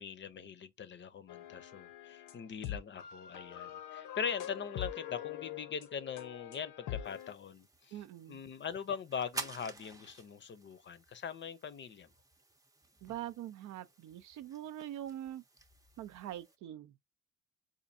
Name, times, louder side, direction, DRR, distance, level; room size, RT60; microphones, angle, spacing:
voice 1, 0.0-8.0 8.3-12.1, left 7 dB, 40° left, 0.5 m, -41 dB
sound 1, 1.3-7.3, left 11 dB, 80° left, 0.6 m, -44 dB
sound 2, 7.0-16.6, right 2 dB, 10° right, 0.5 m, -51 dB
voice 2, 7.9-8.4 13.0-15.4 16.0-16.9, right 12 dB, 75° right, 0.5 m, -43 dB
4.2 x 2.5 x 2.5 m
cardioid pair, 90°, 30 cm